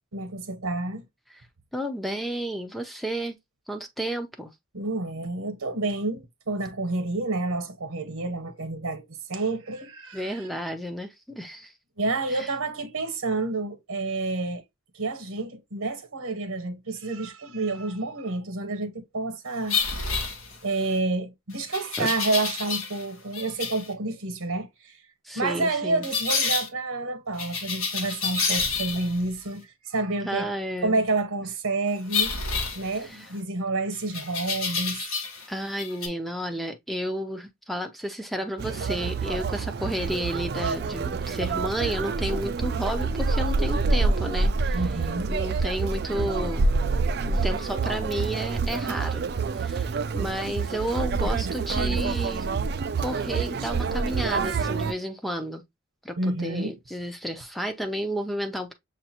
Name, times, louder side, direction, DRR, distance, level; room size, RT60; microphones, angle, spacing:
voice 1, 0.1-1.0 4.7-10.5 12.0-14.6 14.9-19.8 20.6-25.0 25.3-30.5 30.8-32.3 32.7-35.0 44.7-45.3 56.2-56.8, right 2 dB, 90° right, 0.9 m, -29 dB
voice 2, 1.7-3.4 3.7-4.5 10.1-11.7 12.3-12.5 22.0-22.1 25.2-26.1 30.2-31.0 32.8-33.3 35.5-44.9 45.3-46.7 47.3-49.2 49.5-52.5 53.0-55.6 56.0-58.7, equal, ahead, 0.5 m, -32 dB
sound 1, 19.7-20.9 21.7-23.0 23.3-23.9 26.0-26.7 27.4-29.2 32.1-33.4 34.1-35.5 35.7-36.1, left 5 dB, 75° left, 1.4 m, -29 dB
Conversation, 38.6-54.9, right 4 dB, 50° right, 0.4 m, -27 dB
6.4 x 2.4 x 2.8 m
head